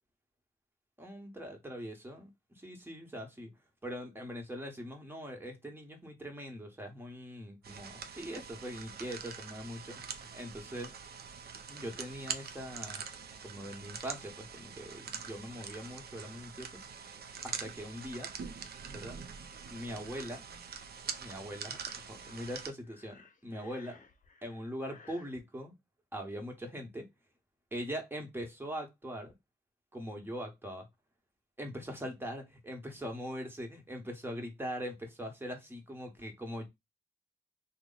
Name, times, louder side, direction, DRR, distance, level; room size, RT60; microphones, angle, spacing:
voice 1, 1.0-3.5 3.8-10.9 11.7-13.0 13.4-17.1 17.4-18.3 18.8-19.2 19.7-20.4 21.2-24.0 24.4-25.7 26.1-27.1 27.7-29.3 29.9-30.9 31.6-36.7, equal, 15° right, 1.2 m, -42 dB
sound 1, 7.6-22.7, right 6 dB, 70° right, 0.5 m, -44 dB
Breathing, 21.7-25.4, left 5 dB, 50° left, 0.6 m, -58 dB
3.1 x 2.1 x 3.9 m
cardioid pair, 65°, 17 cm